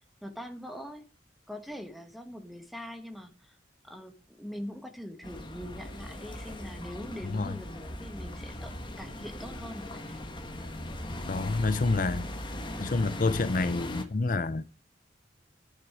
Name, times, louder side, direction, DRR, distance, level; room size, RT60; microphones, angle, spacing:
voice 1, 0.2-1.0 1.5-3.6 3.8-10.7, equal, ahead, 1.4 m, -43 dB
sound 1, 5.2-14.0, left 1 dB, 25° left, 1.4 m, -39 dB
voice 2, 11.3-12.3 12.8-14.6, left 3 dB, 50° left, 0.6 m, -28 dB
11.0 x 9.8 x 4.9 m
head